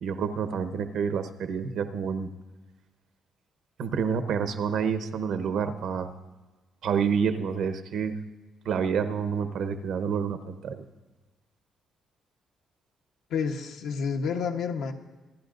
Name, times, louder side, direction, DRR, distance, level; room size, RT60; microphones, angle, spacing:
voice 1, 0.0-2.3 3.8-6.1 6.8-8.1 8.6-10.8, right 6 dB, 75° right, 9 dB, 1.0 m, -28 dB
voice 2, 13.3-14.9, left 6 dB, 80° left, 3 dB, 1.1 m, -29 dB
25.5 x 11.5 x 2.6 m, 1.2 s
cardioid pair, 90°, 0 cm